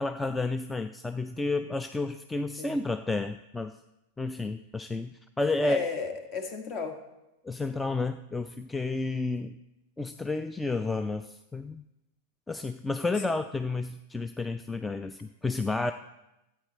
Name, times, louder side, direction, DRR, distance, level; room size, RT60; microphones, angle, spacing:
voice 1, 0.0-3.7 4.2-5.8 7.4-9.5 10.0-11.8 12.5-15.9, left 3 dB, 10° left, 9 dB, 0.4 m, -31 dB
voice 2, 5.6-7.0, left 5 dB, 35° left, 6 dB, 1.4 m, -33 dB
12.5 x 8.6 x 4.2 m, 0.95 s
figure-of-eight pair, 90°, 0 cm